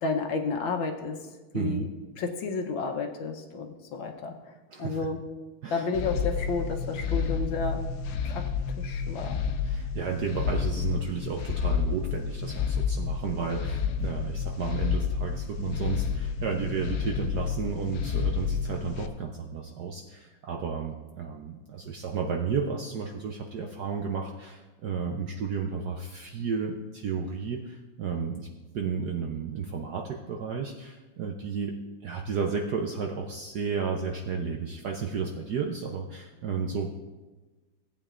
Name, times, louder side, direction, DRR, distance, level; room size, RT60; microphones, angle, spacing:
voice 1, 0.0-1.2 1.5-1.9 2.2-4.3 4.8-5.2 5.7-7.8 8.2-8.5 8.8-9.4, left 4 dB, 70° left, 4 dB, 1.5 m, -31 dB
voice 2, 1.5-1.9 4.7-5.0 5.6-5.9 9.6-28.5 28.7-31.8 32.0-36.9, right 5 dB, 65° right, 2 dB, 1.0 m, -32 dB
sound 1, 5.9-19.1, left 6 dB, 85° left, 0.8 m, -30 dB
16.5 x 8.7 x 2.5 m, 1.2 s
omnidirectional pair, 2.4 m